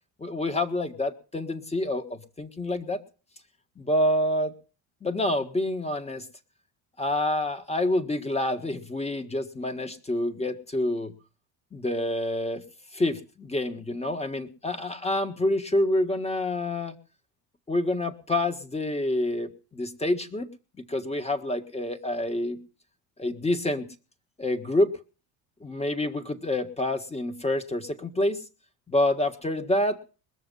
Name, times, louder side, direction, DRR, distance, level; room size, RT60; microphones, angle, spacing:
voice 1, 0.2-3.0 3.8-4.5 5.0-6.3 7.0-11.1 11.7-12.6 12.9-17.0 17.7-20.5 20.8-22.6 23.2-23.9 24.4-25.0 25.6-28.4 28.9-30.0, left 1 dB, 15° left, 9 dB, 1.6 m, -27 dB
21.0 x 7.2 x 5.5 m, 0.36 s
cardioid pair, 105°, 44 cm